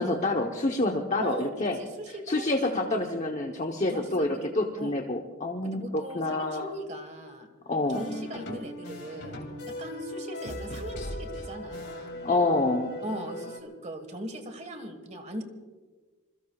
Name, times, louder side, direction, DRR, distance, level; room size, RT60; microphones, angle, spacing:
voice 1, 0.0-1.8 2.3-6.7 7.7-8.0 12.2-12.9, left 2 dB, 35° left, 2 dB, 1.0 m, -27 dB
voice 2, 1.2-2.9 3.9-4.5 4.8-5.0 5.6-7.5 7.9-9.4 9.7-12.2 13.0-15.4, right 1 dB, 35° right, 7 dB, 1.6 m, -39 dB
sound 1, 7.9-13.6, left 1 dB, 55° left, 2.9 m, -39 dB
26.5 x 22.0 x 2.4 m, 1.4 s
head